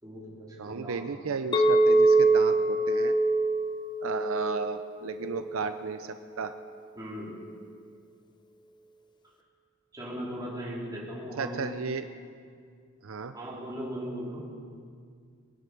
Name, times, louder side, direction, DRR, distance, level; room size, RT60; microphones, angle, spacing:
voice 1, 0.0-1.0 7.0-7.3 9.9-11.6 13.3-14.4, equal, 20° right, -6 dB, 4.0 m, -38 dB
voice 2, 0.6-3.1 4.0-6.5 11.4-12.1 13.0-13.3, right 4 dB, 80° right, 9 dB, 0.6 m, -34 dB
Chink clink, 1.5-5.8, right 2 dB, 20° left, 0.9 m, -24 dB
23.0 x 10.0 x 5.2 m, 2.1 s
head